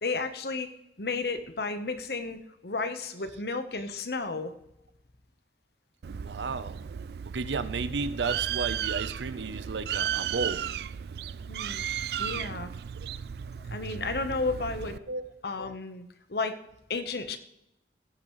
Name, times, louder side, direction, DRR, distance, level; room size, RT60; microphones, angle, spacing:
voice 1, 0.0-4.5 11.5-11.9 12.2-12.7 13.7-15.0 15.4-16.6 16.9-17.4, left 3 dB, 65° left, 9 dB, 1.0 m, -33 dB
Bird, 6.0-15.0, right 9 dB, 65° right, 0.3 m, -34 dB
voice 2, 6.0-6.8 7.2-10.7 13.0-13.1 15.1-15.2, right 4 dB, 85° right, 14 dB, 0.7 m, -33 dB
16.0 x 9.5 x 3.1 m, 0.82 s
head